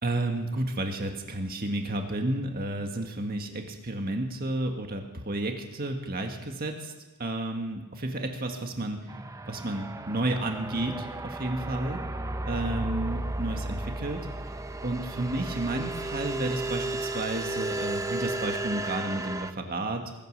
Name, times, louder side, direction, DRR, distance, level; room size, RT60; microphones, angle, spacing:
voice 1, 0.0-6.9 7.2-9.1 9.5-12.0 12.4-14.3 14.8-20.0, right 2 dB, 45° right, 4 dB, 1.7 m, -31 dB
sound 1, 9.1-19.5, right 2 dB, 15° right, 0.7 m, -34 dB
22.5 x 9.4 x 6.6 m, 1.1 s
head